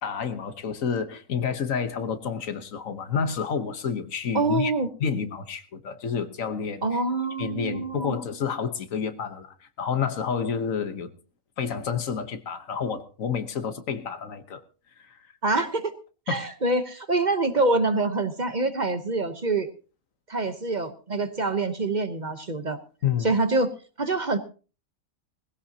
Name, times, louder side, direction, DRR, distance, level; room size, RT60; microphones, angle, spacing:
voice 1, 0.0-4.7 5.0-7.0 7.4-11.1 11.6-14.6 15.0-15.2 16.3-16.4 23.0-23.3, left 6 dB, 80° left, 1.5 m, -29 dB
voice 2, 4.3-4.9 6.8-8.2 15.4-15.9 16.3-19.7 20.3-22.8 23.2-24.4, right 3 dB, 35° right, 1.0 m, -25 dB
20.5 x 16.0 x 2.8 m
omnidirectional pair, 1.4 m